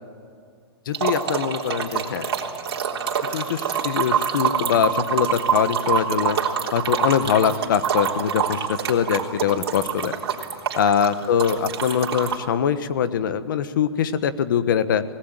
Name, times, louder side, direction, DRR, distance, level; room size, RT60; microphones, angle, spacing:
voice 1, 0.8-2.3 3.3-6.4 6.7-10.1 10.8-15.0, left 8 dB, 50° left, 12 dB, 1.3 m, -23 dB
sound 1, 0.9-12.4, right 7 dB, 65° right, 3.6 m, -26 dB
25.0 x 19.5 x 9.1 m, 2.2 s
hypercardioid pair, 170°, 14 cm